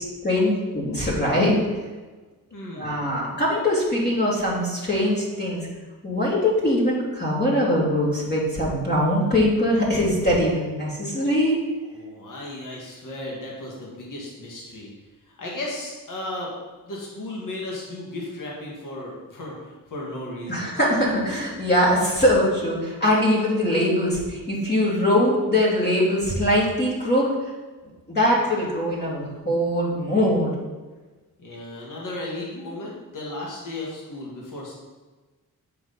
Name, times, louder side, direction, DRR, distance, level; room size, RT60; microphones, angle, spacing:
voice 1, 0.2-1.6 2.7-5.6 6.0-11.6 20.5-27.3 28.1-30.5, left 1 dB, 30° left, -5 dB, 2.7 m, -22 dB
voice 2, 2.5-3.0 11.9-14.9 15.4-16.5 16.8-20.7 31.4-34.7, left 1 dB, 60° left, -4 dB, 1.9 m, -35 dB
7.6 x 5.9 x 4.1 m, 1.3 s
cardioid pair, 100°, 37 cm